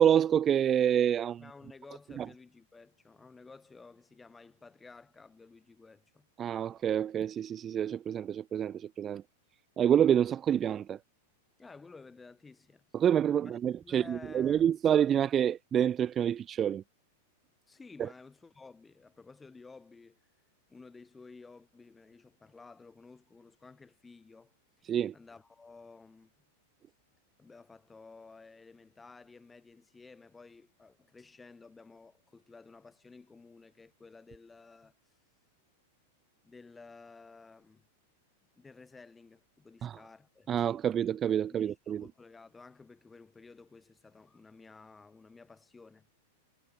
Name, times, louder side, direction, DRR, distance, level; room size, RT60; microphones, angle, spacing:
voice 1, 0.0-1.4 2.2-2.3 6.4-9.2 9.8-11.0 12.9-16.8 18.0-18.1 24.9-25.1 39.8-40.0 40.5-42.0, right 9 dB, 25° right, 0.6 m, -27 dB
voice 2, 1.4-6.3 11.6-13.0 13.5-14.7 17.7-20.3 20.7-24.9 25.1-26.3 27.4-34.9 36.4-37.9 38.6-40.7 41.5-46.1, left 4 dB, 10° left, 7.3 m, -54 dB
figure-of-eight pair, 95°, 0 cm